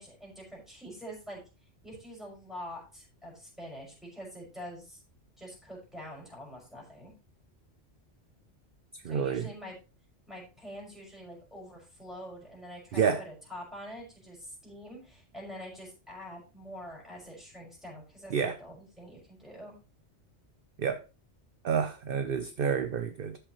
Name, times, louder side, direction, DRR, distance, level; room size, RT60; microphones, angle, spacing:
voice 1, 0.0-1.4 1.8-5.0 5.4-7.1 9.0-9.8 10.3-19.8, equal, ahead, 5.7 m, -45 dB
voice 2, 8.9-9.5 12.9-13.2 18.3-18.6 20.8-21.0 21.6-23.4, right 6 dB, 55° right, 0.8 m, -29 dB
13.0 x 6.8 x 3.1 m
omnidirectional pair, 1.2 m